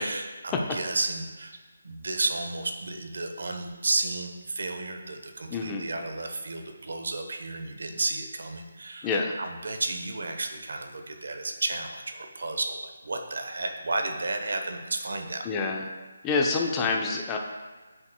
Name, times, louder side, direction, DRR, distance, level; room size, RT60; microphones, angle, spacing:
voice 1, 0.0-1.6 1.8-15.4, right 2 dB, 70° right, 5 dB, 0.9 m, -32 dB
voice 2, 5.5-5.8 9.0-9.3 15.4-15.9 16.2-17.4, left 4 dB, 15° left, 1 dB, 0.6 m, -27 dB
9.5 x 5.3 x 2.2 m, 1.3 s
figure-of-eight pair, 160°, 0 cm